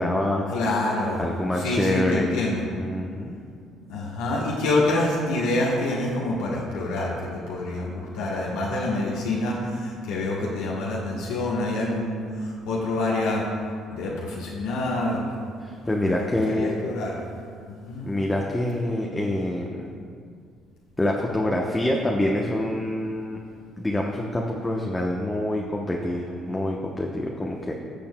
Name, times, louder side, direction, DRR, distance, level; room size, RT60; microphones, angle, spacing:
voice 1, 0.0-0.6 1.2-2.3 2.7-3.4 15.6-16.8 18.1-19.9 21.0-23.4 23.8-27.7, left 1 dB, 15° left, -1 dB, 0.8 m, -26 dB
voice 2, 0.5-1.2 1.6-2.6 3.9-13.4 13.9-15.3 16.2-17.2 17.7-18.1, left 2 dB, 85° left, -5 dB, 1.1 m, -26 dB
14.5 x 6.8 x 2.2 m, 2.2 s
supercardioid pair, 70°, 0 cm